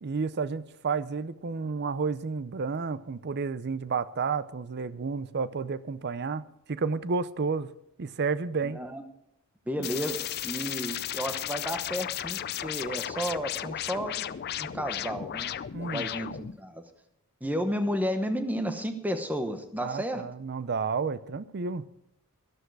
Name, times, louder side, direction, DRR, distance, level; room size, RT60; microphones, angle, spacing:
voice 1, 0.0-6.4 6.7-7.7 8.0-8.8 9.8-9.9 15.7-16.1 19.8-21.9, right 5 dB, 50° right, 16 dB, 0.5 m, -31 dB
voice 2, 8.6-9.0 9.7-14.3 14.6-15.5 15.9-16.8 17.4-20.2, equal, 5° right, 7 dB, 1.0 m, -32 dB
sound 1, 9.8-16.6, left 11 dB, 45° left, 0.4 m, -35 dB
13.0 x 12.0 x 4.7 m, 0.79 s
head